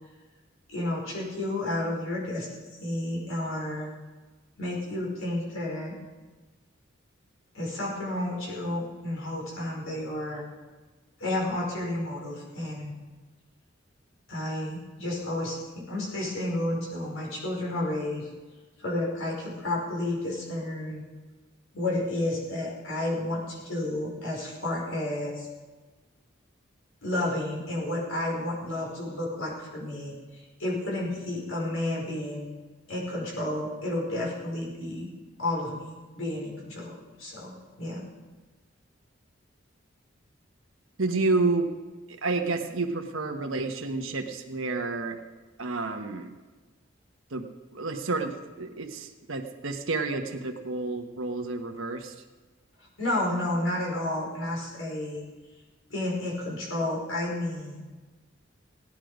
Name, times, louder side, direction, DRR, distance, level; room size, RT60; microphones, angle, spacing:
voice 1, 0.7-2.5 2.8-3.9 4.6-6.0 7.5-10.4 11.2-13.0 14.3-18.3 18.8-21.0 21.7-25.5 27.0-32.5 32.9-35.1 35.4-38.0 53.0-55.2 55.9-57.9, left 1 dB, 85° left, -3 dB, 5.3 m, -31 dB
voice 2, 41.0-41.7 42.1-45.2 45.6-46.3 47.3-47.5 47.7-52.1, right 3 dB, 85° right, 3 dB, 1.2 m, -30 dB
17.5 x 10.0 x 5.1 m, 1.3 s
head